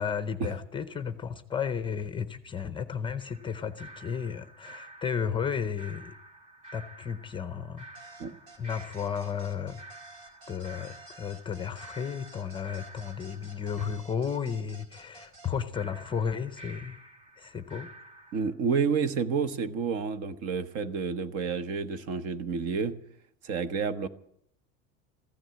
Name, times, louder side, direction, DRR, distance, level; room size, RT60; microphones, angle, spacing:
voice 1, 0.0-6.1 6.7-8.1 8.6-9.8 10.5-17.0 17.4-17.9, left 7 dB, 15° left, 11 dB, 0.6 m, -33 dB
sound 1, 3.2-13.8 15.7-18.5, right 2 dB, 20° right, 2.6 m, -50 dB
sound 2, 7.9-15.5, right 3 dB, 70° right, 4.3 m, -52 dB
voice 2, 18.3-23.0 23.4-24.1, right 5 dB, 50° right, 11 dB, 1.2 m, -29 dB
15.0 x 12.5 x 7.6 m, 0.71 s
cardioid pair, 160°, 31 cm